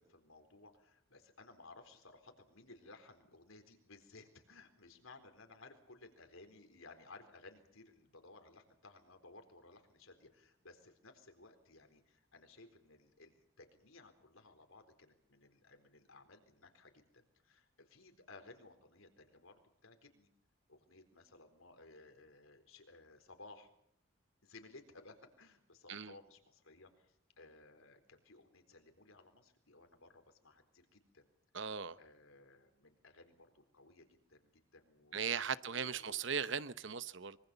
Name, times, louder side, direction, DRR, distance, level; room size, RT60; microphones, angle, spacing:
voice 1, 0.0-20.3 20.7-23.7 24.4-31.3 31.6-35.2 35.6-36.2, left 3 dB, 75° left, 4.1 m, -59 dB
voice 2, 31.5-32.0 35.1-37.4, right 6 dB, 60° right, 0.9 m, -38 dB
25.0 x 23.5 x 7.0 m
head